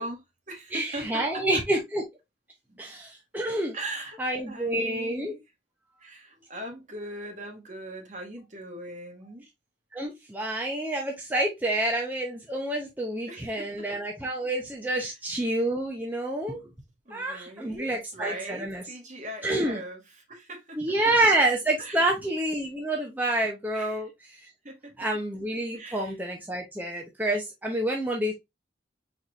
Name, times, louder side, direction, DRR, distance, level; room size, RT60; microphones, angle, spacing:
voice 1, 0.0-1.6 2.7-2.8 3.7-4.2 4.5-5.4 6.0-9.4 13.3-13.8 14.9-15.2 17.0-21.1 21.8-22.1 23.7-24.1 24.6-25.1 25.7-26.2, right 1 dB, 45° right, 1.6 m, -40 dB
voice 2, 0.7-2.0 2.8-3.8 4.2-5.3 9.9-16.6 17.1-18.8 19.4-19.8 20.8-24.1 25.0-28.3, right 1 dB, 10° right, 0.7 m, -28 dB
4.7 x 4.2 x 2.3 m
head